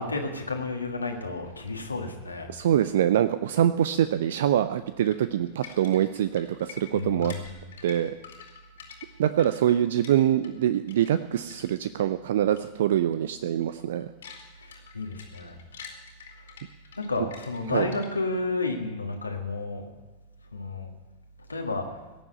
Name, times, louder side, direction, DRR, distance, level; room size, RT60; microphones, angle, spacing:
voice 1, 0.0-2.5 6.9-7.7 14.6-15.6 17.0-19.9 20.5-20.9 21.5-22.0, left 3 dB, 80° left, 3 dB, 1.7 m, -31 dB
voice 2, 2.5-7.3 7.8-8.1 9.2-14.1 17.7-17.9, right 10 dB, 60° right, 13 dB, 0.5 m, -24 dB
sound 1, 5.1-10.6 10.9-12.0 12.5-12.7 12.9-13.2 13.6-18.4, left 7 dB, 65° left, 2.6 m, -47 dB
17.5 x 7.3 x 9.3 m, 1.2 s
figure-of-eight pair, 90°, 0 cm